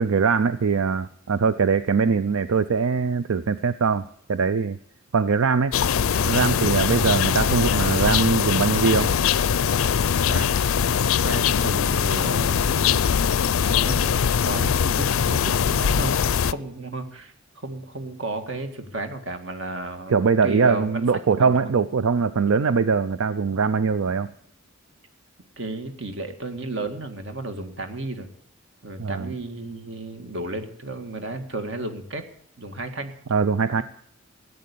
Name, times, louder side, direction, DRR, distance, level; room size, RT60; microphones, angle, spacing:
voice 1, 0.0-4.8 5.1-5.7 6.2-9.1 20.1-24.3 29.0-29.3 33.3-33.8, right 5 dB, 85° right, 13 dB, 0.5 m, -22 dB
sound 1, 5.7-16.5, left 7 dB, 85° left, 0.5 m, -22 dB
voice 2, 10.3-10.9 11.2-12.9 13.7-14.1 14.4-21.8 25.6-28.3 28.8-32.2 32.6-33.1 33.8-33.9, right 2 dB, 60° right, 7 dB, 1.9 m, -33 dB
14.0 x 8.7 x 8.4 m, 0.66 s
head